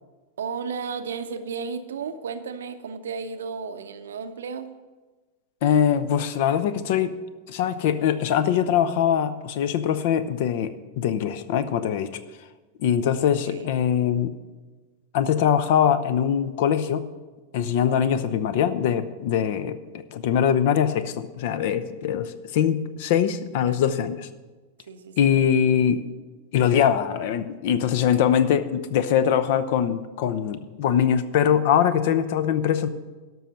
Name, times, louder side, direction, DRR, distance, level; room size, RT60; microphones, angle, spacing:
voice 1, 0.4-4.7 13.5-13.7 23.7-24.0 24.9-25.4, right 5 dB, 65° right, 10 dB, 0.7 m, -34 dB
voice 2, 5.6-7.2 7.5-12.1 12.8-14.3 15.1-17.0 17.5-24.3 25.2-26.0 26.5-32.9, left 9 dB, 50° left, 13 dB, 0.6 m, -22 dB
12.5 x 6.2 x 6.6 m, 1.3 s
figure-of-eight pair, 90°, 0 cm